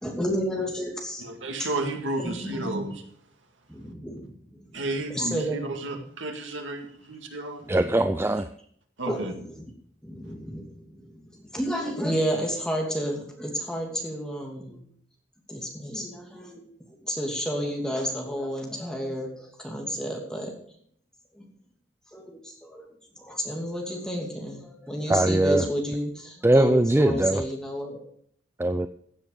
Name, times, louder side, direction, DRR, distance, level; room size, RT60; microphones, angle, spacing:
voice 1, 0.0-1.2 1.6-1.7 2.2-2.6 3.7-4.3 5.1-5.7 7.6-7.8 9.1-9.7 10.0-14.8 15.5-16.6 17.0-20.5 21.4-21.5 22.1-22.9 23.2-28.0, equal, 5° left, 0 dB, 2.7 m, -31 dB
voice 2, 1.2-3.0 4.7-7.7 9.0-9.3, right 2 dB, 85° right, 4 dB, 2.1 m, -32 dB
voice 3, 7.7-8.5 25.1-25.7 26.4-27.4 28.6-28.9, right 1 dB, 10° right, 10 dB, 0.4 m, -21 dB
15.5 x 7.7 x 5.0 m, 0.63 s
head